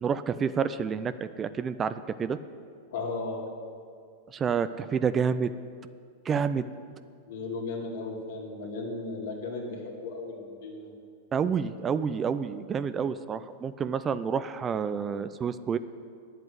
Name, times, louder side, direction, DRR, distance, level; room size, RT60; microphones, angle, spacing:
voice 1, 0.0-2.4 4.3-5.5 6.3-6.7 11.3-15.8, right 6 dB, 25° right, 13 dB, 0.5 m, -29 dB
voice 2, 2.9-3.4 7.3-10.9, left 3 dB, 75° left, -1 dB, 2.7 m, -35 dB
9.3 x 8.0 x 9.5 m, 2.2 s
hypercardioid pair, 120°, 0 cm